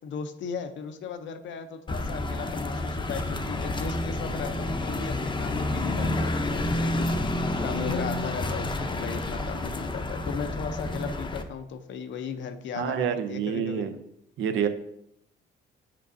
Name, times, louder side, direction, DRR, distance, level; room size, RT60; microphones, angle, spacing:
voice 1, 0.0-13.9, left 6 dB, 70° left, 8 dB, 0.6 m, -36 dB
sound 1, 1.9-11.4, left 2 dB, 25° left, 0.6 m, -29 dB
voice 2, 12.7-13.9 14.4-14.7, right 8 dB, 80° right, 9 dB, 0.6 m, -27 dB
7.4 x 5.3 x 2.6 m, 0.78 s
cardioid pair, 90°, 20 cm